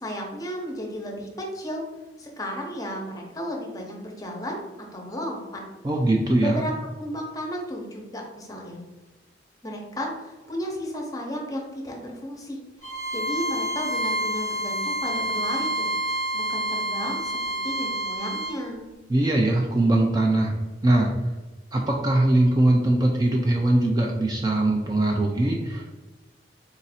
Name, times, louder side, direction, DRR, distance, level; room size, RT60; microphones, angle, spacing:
voice 1, 0.0-1.8 2.2-4.6 4.9-5.6 6.4-6.7 7.0-8.8 9.6-12.6 13.1-15.9 16.3-18.9, equal, 20° left, 0 dB, 0.7 m, -33 dB
voice 2, 5.8-6.6 19.1-20.6 20.8-21.1 21.7-26.0, right 1 dB, 20° right, 0 dB, 0.3 m, -21 dB
Bowed string instrument, 12.8-18.6, right 1 dB, 75° right, 1.5 m, -28 dB
4.0 x 2.6 x 4.1 m, 1.2 s
head